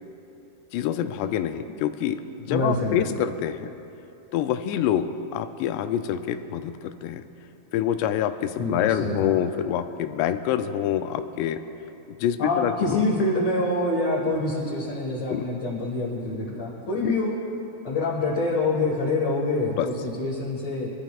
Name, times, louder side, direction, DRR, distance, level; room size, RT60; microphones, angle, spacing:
voice 1, 0.7-3.7 4.3-7.3 7.7-11.6 12.1-13.0 15.3-15.5 17.0-17.1 19.8-19.9, left 10 dB, 90° left, 9 dB, 2.7 m, -26 dB
voice 2, 2.5-3.0 8.6-9.3 12.4-17.4 17.8-20.9, left 2 dB, 55° left, -7 dB, 2.1 m, -26 dB
22.0 x 13.5 x 2.4 m, 2.9 s
omnidirectional pair, 4.8 m